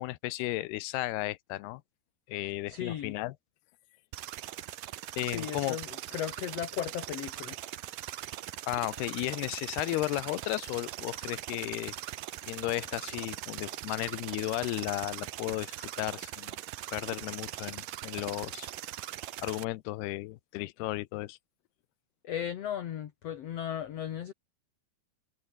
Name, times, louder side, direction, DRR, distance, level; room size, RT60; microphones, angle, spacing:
voice 1, 0.0-1.8 2.3-3.3 5.2-5.8 8.7-11.9 12.5-16.6 16.9-18.7 19.4-21.4, left 18 dB, 90° left, 2.8 m, -34 dB
voice 2, 2.7-3.2 5.2-7.6 22.2-24.3, left 10 dB, 60° left, 1.7 m, -36 dB
sound 1, 4.1-19.6, right 14 dB, 65° right, 2.4 m, -41 dB
omnidirectional pair, 4.5 m